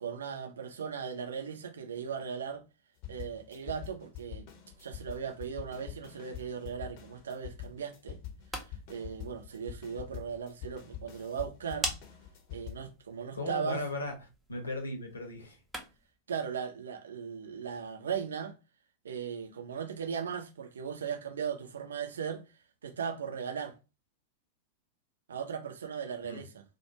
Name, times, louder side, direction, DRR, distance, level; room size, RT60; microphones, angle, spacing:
voice 1, 0.0-2.6 3.1-4.5 4.8-8.2 8.5-11.9 12.5-13.8 16.3-18.6 19.0-22.4 22.8-23.8 25.3-26.6, right 7 dB, 70° right, 0.6 m, -38 dB
sound 1, 3.0-12.9, left 10 dB, 45° left, 0.7 m, -45 dB
sound 2, 8.2-16.2, equal, 5° right, 0.6 m, -45 dB
voice 2, 13.3-14.1 14.5-15.6 26.2-26.4, left 2 dB, 80° left, 0.9 m, -36 dB
2.5 x 2.2 x 2.9 m
figure-of-eight pair, 90°, 0 cm